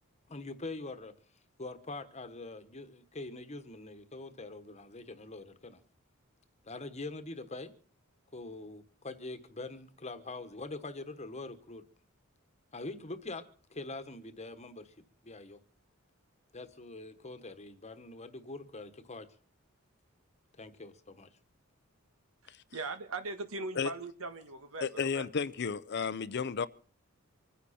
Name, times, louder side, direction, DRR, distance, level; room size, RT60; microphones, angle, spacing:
voice 1, 0.3-1.1 1.6-5.8 6.6-7.7 8.3-11.8 12.7-13.4 13.7-15.6 16.5-19.3 20.6-21.4, left 2 dB, 35° left, 1.3 m, -44 dB
voice 2, 22.4-25.3, right 3 dB, 75° right, 1.7 m, -40 dB
voice 3, 24.8-26.7, left 5 dB, 55° left, 0.6 m, -32 dB
25.5 x 10.0 x 4.3 m
head